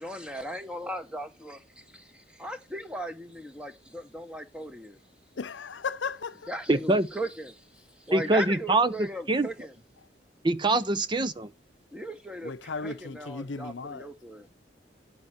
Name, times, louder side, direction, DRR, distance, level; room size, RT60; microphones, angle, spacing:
voice 1, 0.0-5.0 6.5-9.7 11.9-12.5 12.8-14.5, right 1 dB, 5° right, 1.2 m, -38 dB
voice 2, 5.4-6.5 12.4-14.1, left 5 dB, 90° left, 0.7 m, -35 dB
voice 3, 6.7-7.1 8.1-9.5 10.4-11.5, right 2 dB, 25° right, 0.6 m, -24 dB
10.0 x 9.5 x 4.2 m
head